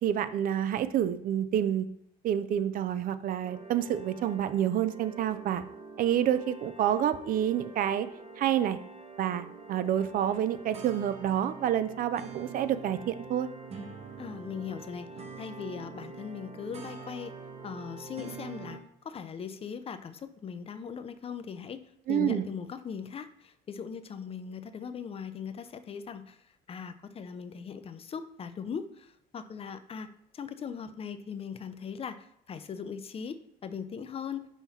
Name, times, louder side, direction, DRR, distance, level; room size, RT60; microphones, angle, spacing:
voice 1, 0.0-1.9 2.2-5.6 6.0-8.1 8.4-8.8 9.2-13.5 22.1-22.5, right 10 dB, 55° right, 13 dB, 0.5 m, -28 dB
sound 1, 3.4-18.8, right 4 dB, 40° right, 1.1 m, -45 dB
voice 2, 14.2-15.1 15.4-17.3 17.6-21.8 22.1-30.1 30.3-34.5, left 6 dB, 35° left, 11 dB, 0.5 m, -39 dB
5.6 x 3.0 x 5.5 m, 0.74 s
cardioid pair, 110°, 17 cm